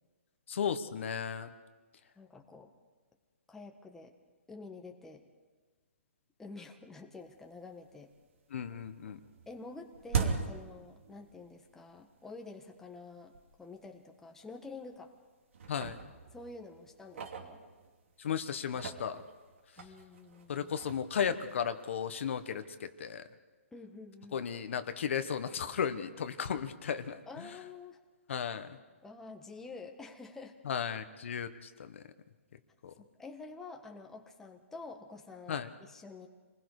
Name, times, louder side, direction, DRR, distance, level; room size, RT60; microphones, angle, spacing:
voice 1, 0.5-1.5 8.5-9.2 15.7-16.0 18.2-19.2 20.5-23.2 24.3-27.5 28.3-28.8 30.7-32.0 32.8-32.9 35.5-35.7, left 7 dB, 60° left, 10 dB, 1.4 m, -35 dB
voice 2, 2.2-2.7 3.5-4.1 4.5-5.2 6.4-8.1 9.5-15.1 16.3-17.7 19.8-20.7 23.7-24.4 27.3-28.0 29.0-30.6 33.0-36.3, left 3 dB, 5° left, 2 dB, 1.5 m, -48 dB
sound 1, 7.3-7.4 7.8-8.4 8.6-11.6 11.9-12.0 12.7-12.8 13.3-13.4 13.8-13.9 14.6-15.2 15.5-18.1 18.6-22.5, right 5 dB, 65° right, 2.8 m, -40 dB
29.0 x 20.5 x 5.0 m, 1.4 s
hypercardioid pair, 155°, 8 cm